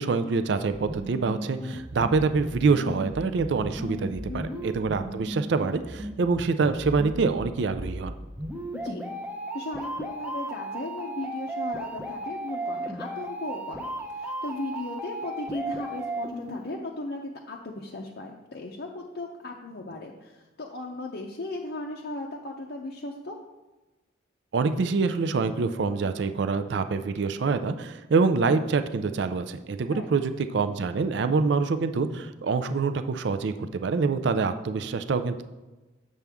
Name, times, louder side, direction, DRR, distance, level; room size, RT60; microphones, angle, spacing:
voice 1, 0.0-8.1 24.5-35.5, right 4 dB, 60° right, 10 dB, 0.4 m, -26 dB
sound 1, 0.7-16.7, right 1 dB, 10° right, 0.6 m, -36 dB
voice 2, 4.3-4.6 8.7-9.1 9.5-23.4 29.9-30.1, left 2 dB, 55° left, -1 dB, 0.6 m, -37 dB
7.4 x 6.8 x 3.5 m, 1.1 s
head